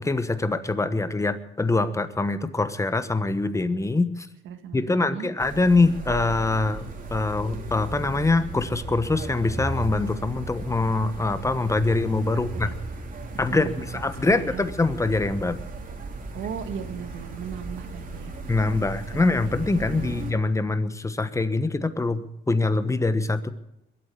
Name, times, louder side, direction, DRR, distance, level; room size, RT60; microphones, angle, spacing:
voice 1, 0.0-4.3 4.7-12.7 13.4-15.6 18.5-23.5, left 3 dB, 15° left, 11 dB, 1.2 m, -24 dB
voice 2, 4.4-5.3 12.5-12.7 13.5-13.8 14.2-14.6 16.3-18.3 19.1-19.2 19.7-20.2, right 8 dB, 80° right, 8 dB, 1.7 m, -37 dB
sound 1, 5.4-20.3, right 2 dB, 45° right, 3.0 m, -36 dB
22.0 x 8.7 x 6.8 m, 0.88 s
cardioid pair, 90°, 20 cm